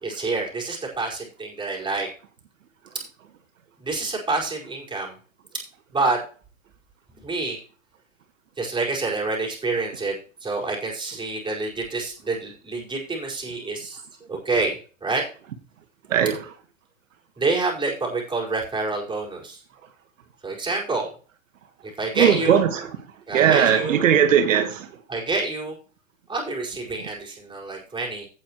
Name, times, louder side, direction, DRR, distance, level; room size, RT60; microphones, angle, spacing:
voice 1, 0.0-2.1 3.8-5.2 5.9-6.2 7.2-7.6 8.6-10.1 10.4-14.0 14.3-14.7 15.0-15.2 17.4-19.6 20.4-21.1 22.0-22.6 23.3-24.0 25.1-25.7 26.3-28.3, right 3 dB, 10° right, 4.9 m, -27 dB
voice 2, 16.1-16.4 22.2-22.9 23.3-24.9, right 8 dB, 75° right, 1.6 m, -19 dB
17.0 x 6.6 x 3.1 m
hypercardioid pair, 115°, 39 cm